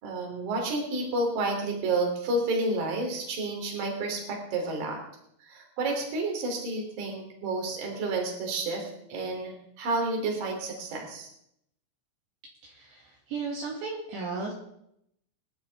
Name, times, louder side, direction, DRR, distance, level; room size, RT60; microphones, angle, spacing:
voice 1, 0.0-5.0 5.5-11.3, right 2 dB, 50° right, 2 dB, 4.2 m, -30 dB
voice 2, 12.6-14.5, right 4 dB, 65° right, -3 dB, 4.1 m, -35 dB
25.0 x 11.0 x 3.5 m, 0.76 s
omnidirectional pair, 5.9 m